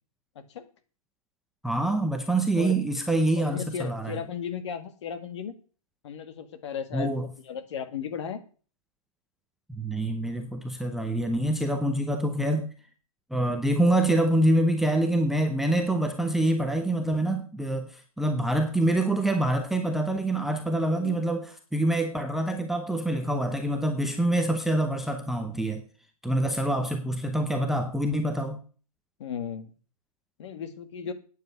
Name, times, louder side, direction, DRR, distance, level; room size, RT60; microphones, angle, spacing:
voice 1, 1.6-4.2 6.9-7.3 9.7-12.7 13.3-25.8 26.2-28.6, right 1 dB, ahead, 5 dB, 0.7 m, -26 dB
voice 2, 3.4-5.6 6.0-8.4 20.9-21.2 26.4-26.5 26.8-26.9 29.2-29.7 30.4-31.1, left 7 dB, 50° left, 10 dB, 1.9 m, -36 dB
9.3 x 7.6 x 8.2 m, 0.40 s
hypercardioid pair, 150°, 19 cm